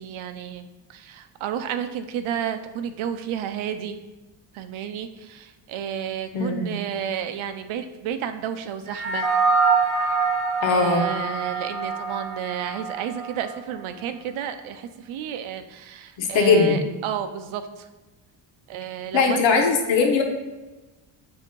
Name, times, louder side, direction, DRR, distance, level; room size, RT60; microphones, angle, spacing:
voice 1, 0.0-4.0 4.5-9.3 10.7-17.9 18.7-19.6, right 9 dB, 75° right, 9 dB, 0.7 m, -31 dB
voice 2, 6.3-6.7 10.6-11.0 16.2-16.8 19.1-20.2, left 4 dB, 65° left, 3 dB, 1.1 m, -20 dB
sound 1, 8.9-13.5, right 4 dB, 10° left, 1.6 m, -24 dB
7.8 x 2.8 x 5.3 m, 1.1 s
cardioid pair, 170°, 48 cm